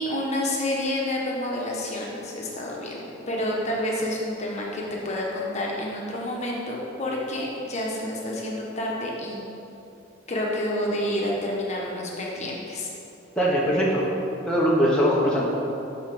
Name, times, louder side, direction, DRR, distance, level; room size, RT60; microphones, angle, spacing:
voice 1, 0.0-9.5 10.3-12.9, left 1 dB, 35° left, -3 dB, 1.2 m, -29 dB
voice 2, 13.4-14.1 14.5-15.4, equal, 5° left, -7 dB, 1.0 m, -21 dB
6.9 x 5.6 x 6.0 m, 2.9 s
head